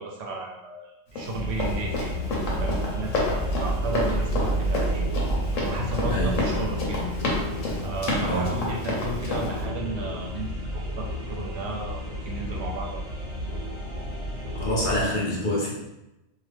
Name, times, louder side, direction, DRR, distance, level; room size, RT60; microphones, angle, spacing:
voice 1, 0.0-7.1 7.8-13.0, right 2 dB, 65° right, -1 dB, 0.8 m, -34 dB
Run, 1.2-9.6, left 2 dB, 85° left, 1.2 m, -29 dB
sound 1, 1.3-15.0, right 1 dB, 25° left, 1.3 m, -31 dB
sound 2, 1.7-15.1, left 2 dB, 85° right, 0.3 m, -41 dB
voice 2, 6.1-6.4 8.2-8.6 14.5-15.7, left 1 dB, 55° left, -4 dB, 0.6 m, -26 dB
2.8 x 2.2 x 3.2 m, 0.94 s
omnidirectional pair, 1.3 m